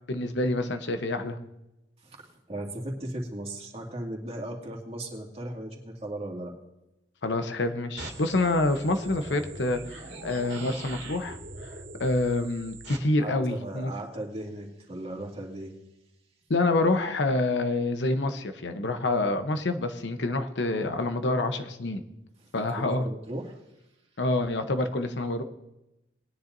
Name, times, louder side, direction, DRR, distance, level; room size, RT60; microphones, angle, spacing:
voice 1, 0.1-1.4 7.2-11.4 11.6-11.7 12.0-13.9 16.5-22.0 22.5-23.0 24.2-25.4, left 2 dB, 75° left, 8 dB, 0.9 m, -27 dB
voice 2, 2.0-6.5 13.2-15.7 22.8-23.6, right 1 dB, 35° right, 0 dB, 2.3 m, -37 dB
sound 1, 8.0-13.0, right 2 dB, 75° right, 2.1 m, -42 dB
20.0 x 10.0 x 2.7 m, 0.94 s
head